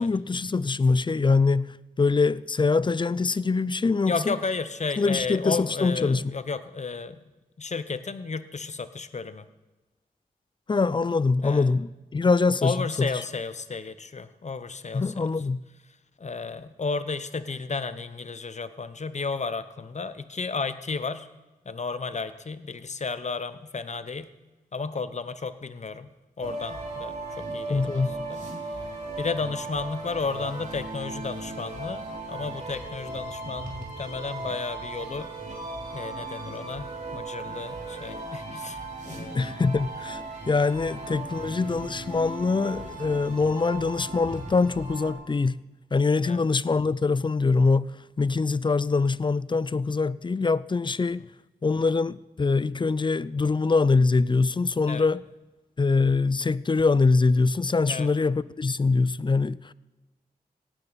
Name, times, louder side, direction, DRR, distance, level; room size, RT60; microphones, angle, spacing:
voice 1, 0.0-4.4 5.0-6.3 10.7-13.1 14.9-15.6 27.7-28.2 39.3-45.6 45.9-51.2 51.6-55.2 55.8-59.7, left 4 dB, 30° left, 0.4 m, -24 dB
voice 2, 4.1-7.2 7.6-9.5 11.4-11.8 12.6-15.3 16.2-21.3 21.6-24.3 24.7-26.1 26.4-28.4 29.2-35.3 35.9-39.5 40.8-40.9 46.2-46.4 54.9-55.1 57.9-58.1, left 4 dB, 45° left, 0.9 m, -33 dB
sound 1, 26.4-45.1, right 2 dB, 50° right, 3.5 m, -37 dB
17.5 x 9.0 x 4.1 m
cardioid pair, 50°, 16 cm